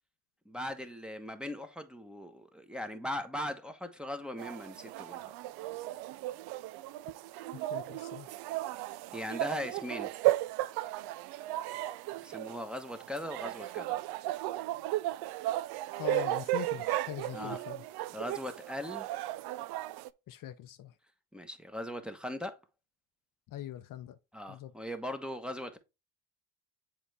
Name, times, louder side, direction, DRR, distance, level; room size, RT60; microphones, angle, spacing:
voice 1, 0.4-5.3 9.1-10.1 12.2-14.1 17.3-17.6 18.1-19.1 21.3-22.5 24.3-25.8, left 1 dB, ahead, 1.1 m, -39 dB
sound 1, 4.4-20.1, right 16 dB, 65° right, 0.5 m, -35 dB
voice 2, 7.5-8.3 16.0-17.8 20.3-21.0 23.5-24.2 24.5-24.7, left 11 dB, 50° left, 0.7 m, -42 dB
7.3 x 4.0 x 3.4 m
supercardioid pair, 70°, 41 cm